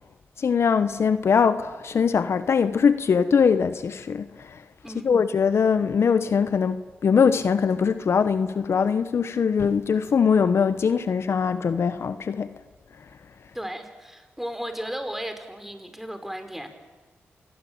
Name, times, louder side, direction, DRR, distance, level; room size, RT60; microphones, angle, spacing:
voice 1, 0.4-4.6 5.0-12.6, left 6 dB, 65° left, 1.0 m, -22 dB
voice 2, 13.5-16.7, equal, 5° right, 4.9 m, -35 dB
27.5 x 20.5 x 8.8 m
supercardioid pair, 45°, 5 cm